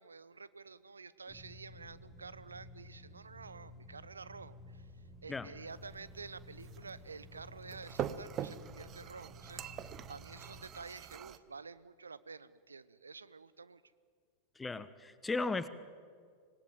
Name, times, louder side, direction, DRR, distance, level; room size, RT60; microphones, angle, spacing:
voice 1, 0.0-13.8, right 4 dB, 75° right, 18 dB, 0.8 m, -50 dB
sound 1, 1.3-10.6, left 1 dB, 15° right, 4.1 m, -54 dB
sound 2, 5.7-11.4, right 10 dB, 30° right, 1.0 m, -44 dB
voice 2, 14.6-15.7, left 3 dB, 10° left, 14 dB, 1.2 m, -36 dB
26.0 x 19.5 x 9.1 m, 2.1 s
figure-of-eight pair, 90°, 0 cm